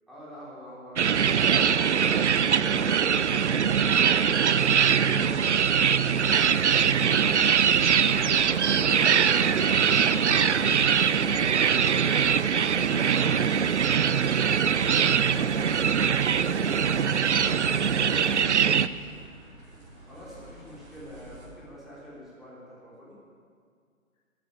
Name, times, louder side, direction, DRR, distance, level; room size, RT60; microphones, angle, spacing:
voice 1, 0.1-6.1 8.3-15.8 20.0-23.2, equal, ahead, -9 dB, 3.7 m, -46 dB
sound 1, 1.0-18.9, right 7 dB, 60° right, 0.5 m, -22 dB
sound 2, 4.6-21.5, right 1 dB, 40° right, 4.9 m, -49 dB
sound 3, 6.2-18.4, left 1 dB, 85° left, 2.2 m, -46 dB
voice 2, 6.7-7.4 16.4-19.3, left 3 dB, 25° left, -1 dB, 1.3 m, -47 dB
14.5 x 8.6 x 10.0 m, 2.1 s
figure-of-eight pair, 135°, 40 cm